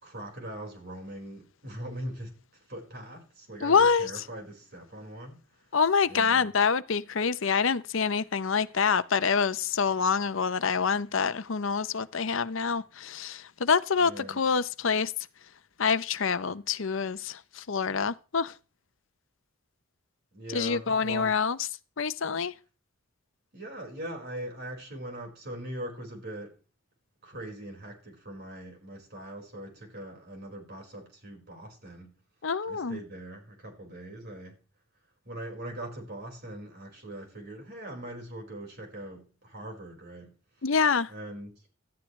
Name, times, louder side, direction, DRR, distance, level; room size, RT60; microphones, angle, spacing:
voice 1, 0.0-2.3 2.7-5.4 6.1-6.5 14.0-14.4 20.3-21.3 23.5-26.6 27.2-32.1 32.7-34.6 35.2-40.3 41.1-41.5, right 1 dB, 50° right, 4.9 m, -41 dB
voice 2, 3.6-4.2 5.7-15.1 15.8-18.5 20.5-21.6 22.0-22.5 32.4-33.0 40.6-41.1, left 5 dB, 60° left, 0.7 m, -26 dB
18.5 x 13.5 x 3.2 m
head